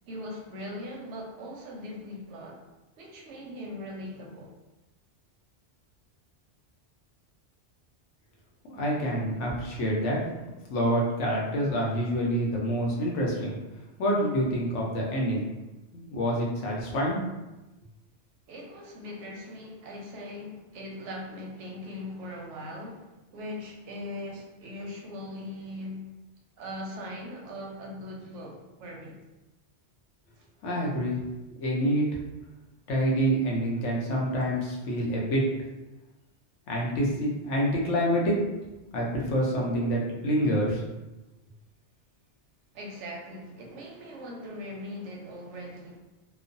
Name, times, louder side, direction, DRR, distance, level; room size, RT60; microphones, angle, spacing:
voice 1, 0.0-2.6 3.0-4.5 18.5-26.1 26.6-29.2 30.4-30.5 42.7-46.0, left 1 dB, 85° right, 0 dB, 0.9 m, -40 dB
voice 2, 8.6-10.2 10.7-13.6 14.0-15.4 15.9-17.2 30.6-31.2 31.6-32.1 32.9-35.4 36.7-38.3 38.9-40.8, equal, 90° left, -2 dB, 1.0 m, -27 dB
3.0 x 2.0 x 2.5 m, 1.0 s
omnidirectional pair, 1.2 m